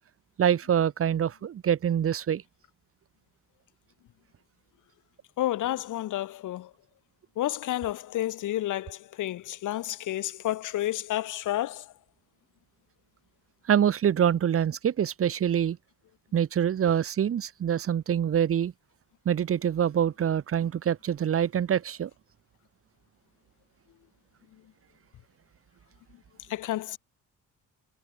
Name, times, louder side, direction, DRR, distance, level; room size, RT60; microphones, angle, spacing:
voice 1, 0.4-2.4 13.7-15.8 16.3-18.7 19.2-22.1, right 9 dB, 50° right, 1.0 m, -25 dB
voice 2, 5.4-6.7 7.4-11.9 26.5-27.0, left 14 dB, 85° left, 6.8 m, -30 dB
cardioid pair, 90°, 30 cm